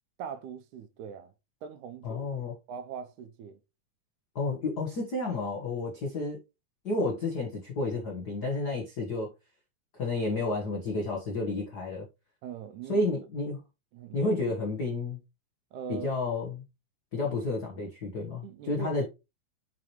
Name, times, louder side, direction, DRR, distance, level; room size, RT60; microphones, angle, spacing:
voice 1, 0.2-1.3 1.6-2.3 2.7-3.6 12.4-13.1 13.9-14.4 15.7-16.1 18.4-19.1, right 7 dB, 75° right, 2.0 m, -41 dB
voice 2, 2.0-2.5 4.3-6.4 6.8-9.3 9.9-12.1 12.9-13.6 14.1-15.2 15.9-16.6 17.1-19.1, left 2 dB, 65° left, 0.9 m, -31 dB
5.9 x 5.8 x 3.0 m
omnidirectional pair, 3.7 m